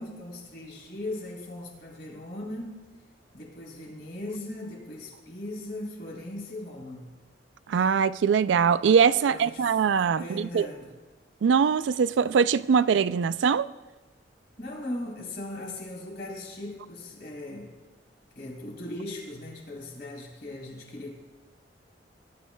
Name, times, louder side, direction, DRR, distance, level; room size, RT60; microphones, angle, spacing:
voice 1, 0.0-2.8 3.3-7.1 9.2-9.7 10.2-11.0 14.6-17.8 18.4-21.1, left 1 dB, 60° left, 3.6 m, -38 dB
voice 2, 7.7-10.7 11.4-13.7, right 6 dB, 85° right, 0.3 m, -22 dB
20.5 x 12.5 x 2.2 m
head